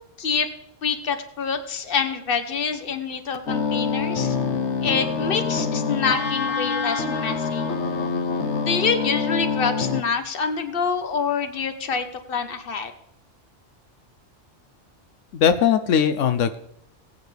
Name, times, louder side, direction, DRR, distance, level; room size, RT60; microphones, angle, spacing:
voice 1, 0.8-4.4 4.8-7.7 8.7-12.9, left 6 dB, 50° left, 9 dB, 1.2 m, -26 dB
sound 1, 3.5-10.0, left 5 dB, 70° left, 1.3 m, -25 dB
voice 2, 15.3-16.6, left 8 dB, 85° left, 11 dB, 1.0 m, -19 dB
20.5 x 8.5 x 3.4 m, 0.76 s
omnidirectional pair, 1.2 m